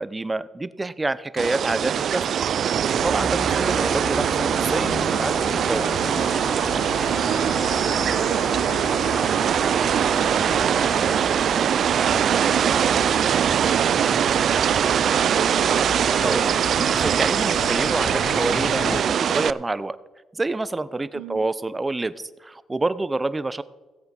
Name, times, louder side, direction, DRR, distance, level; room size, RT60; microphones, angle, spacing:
voice 1, 0.0-2.3 2.6-6.0 11.5-11.7 16.2-20.0 20.3-23.6, right 2 dB, 20° right, 15 dB, 0.6 m, -28 dB
sound 1, 1.4-19.5, right 8 dB, 60° right, 0.3 m, -22 dB
sound 2, 3.0-19.0, left 6 dB, 65° left, 1.1 m, -35 dB
voice 2, 3.5-3.9 7.1-15.7 21.1-21.4, right 10 dB, 85° right, 12 dB, 0.8 m, -34 dB
16.5 x 7.9 x 5.3 m, 1.2 s
cardioid pair, 90°, 0 cm